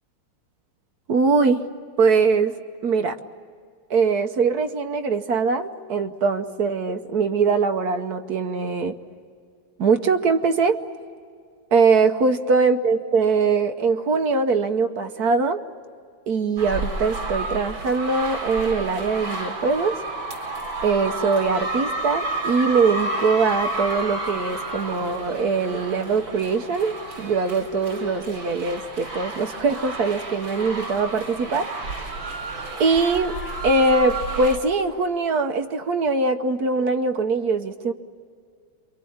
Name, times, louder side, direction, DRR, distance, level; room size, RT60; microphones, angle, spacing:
voice 1, 1.1-1.7 2.0-2.6 2.8-3.2 3.9-9.0 9.8-10.8 11.7-15.6 16.3-20.0 20.8-31.7 32.8-33.4 33.6-37.9, right 4 dB, 60° right, 7 dB, 1.3 m, -22 dB
sound 1, 16.6-34.6, right 2 dB, 75° right, 5.0 m, -31 dB
28.0 x 24.5 x 8.7 m, 2.2 s
omnidirectional pair, 2.1 m